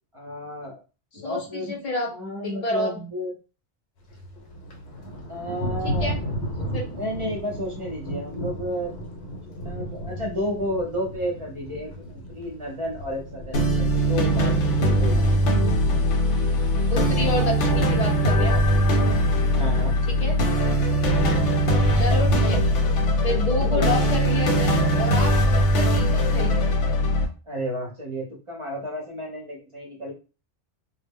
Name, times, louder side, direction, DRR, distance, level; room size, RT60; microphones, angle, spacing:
voice 1, 0.1-0.8 1.1-1.8 2.1-3.3 5.3-6.1 6.9-15.3 19.5-20.0 23.6-23.9 27.5-30.1, equal, 35° right, -1 dB, 0.5 m, -32 dB
voice 2, 1.1-2.1 2.4-2.9 5.8-6.2 6.7-6.8 16.9-18.6 20.1-20.4 21.9-22.6 23.2-26.7, left 2 dB, 45° left, 1 dB, 0.5 m, -29 dB
Thunder, 4.0-23.2, equal, 65° left, 0.9 m, -36 dB
sound 1, 13.5-27.3, equal, 85° left, 0.9 m, -21 dB
2.0 x 2.0 x 3.5 m, 0.33 s
omnidirectional pair, 1.2 m